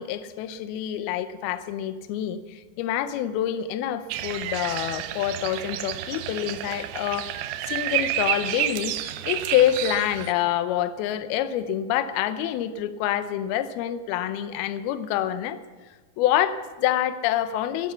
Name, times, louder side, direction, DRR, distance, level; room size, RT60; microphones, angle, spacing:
voice 1, 0.0-7.4 7.7-8.9 9.3-15.6 16.2-17.9, left 11 dB, 80° left, 12 dB, 2.4 m, -26 dB
sound 1, 4.1-10.3, right 13 dB, 90° right, 3.1 m, -30 dB
16.5 x 12.0 x 7.0 m, 1.3 s
omnidirectional pair, 5.1 m